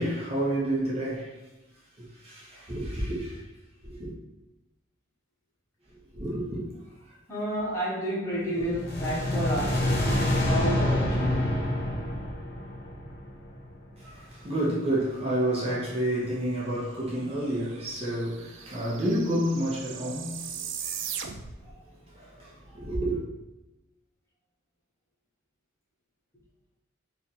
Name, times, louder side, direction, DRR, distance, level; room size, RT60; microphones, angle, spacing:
voice 1, 0.0-1.3 2.0-3.4 3.8-4.1 6.1-6.6 14.0-20.5 20.8-21.1 22.1-23.2, right 1 dB, 30° right, 1.0 m, -30 dB
voice 2, 7.3-11.7, equal, 15° left, 1.1 m, -31 dB
sound 1, 8.6-13.8, left 1 dB, 50° left, 0.9 m, -27 dB
sound 2, 17.2-17.3 17.5-21.7, right 8 dB, 65° right, 0.4 m, -39 dB
3.4 x 2.7 x 4.2 m
head